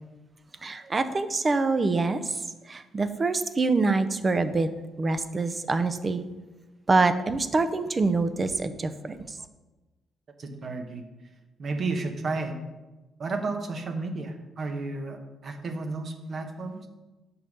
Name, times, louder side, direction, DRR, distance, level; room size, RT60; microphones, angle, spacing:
voice 1, 0.6-4.7 5.0-6.2 6.9-9.4, right 3 dB, 30° right, 11 dB, 0.6 m, -25 dB
voice 2, 10.4-11.1 11.6-12.5 13.2-16.9, right 3 dB, 50° right, 5 dB, 1.1 m, -32 dB
6.6 x 5.6 x 5.3 m, 1.1 s
cardioid pair, 90°, 0 cm